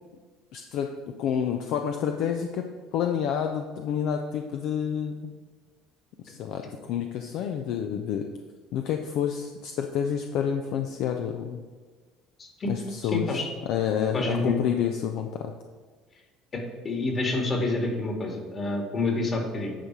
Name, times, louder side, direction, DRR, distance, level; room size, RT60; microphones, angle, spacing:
voice 1, 0.5-0.9 1.2-2.6 2.9-5.3 6.2-8.3 8.7-11.6 12.6-13.3 13.7-15.5, left 8 dB, 65° left, 4 dB, 0.5 m, -29 dB
voice 2, 12.4-12.7 13.1-13.5 14.1-14.6 16.5-19.8, left 2 dB, 35° left, 2 dB, 2.0 m, -28 dB
10.0 x 4.1 x 4.6 m, 1.4 s
hypercardioid pair, 70°, 0 cm